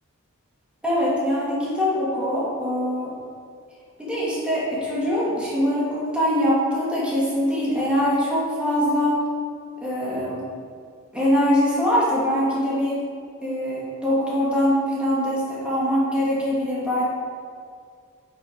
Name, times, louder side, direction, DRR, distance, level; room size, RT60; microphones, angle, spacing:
voice 1, 0.8-3.1 4.0-9.2 9.8-10.5 11.1-13.0 13.4-17.0, equal, 5° right, -8 dB, 1.9 m, -23 dB
8.6 x 4.5 x 4.5 m, 2.2 s
head